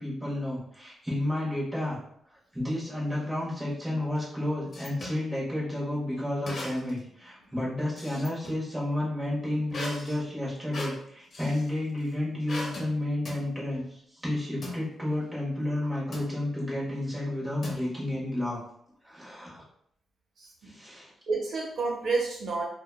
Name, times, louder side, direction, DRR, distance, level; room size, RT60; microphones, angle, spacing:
voice 1, 0.0-2.0 2.5-18.6 19.0-19.6 20.6-21.1, left 1 dB, 5° right, -7 dB, 1.1 m, -31 dB
sound 1, 4.1-5.2 6.4-7.0 7.4-8.6 9.7-11.7 12.5-12.9 13.2-13.5 14.6-14.8 16.1-16.4 17.6-18.2, left 2 dB, 45° left, 0.6 m, -39 dB
voice 2, 20.4-20.7 21.3-22.6, right 3 dB, 65° right, -3 dB, 0.7 m, -30 dB
2.8 x 2.2 x 2.3 m, 0.70 s
cardioid pair, 120°, 0 cm